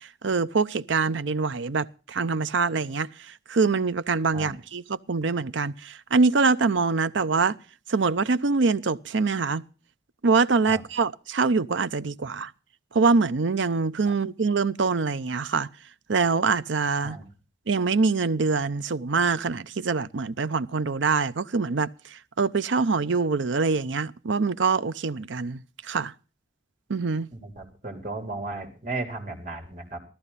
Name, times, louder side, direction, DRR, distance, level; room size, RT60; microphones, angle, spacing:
voice 1, 0.0-7.6 7.9-9.6 10.2-12.5 12.9-15.7 16.1-17.2 17.7-26.1 26.9-27.3, right 4 dB, 85° right, 0.7 m, -24 dB
voice 2, 27.3-30.0, right 2 dB, 40° right, 3.7 m, -35 dB
15.0 x 14.0 x 4.1 m
head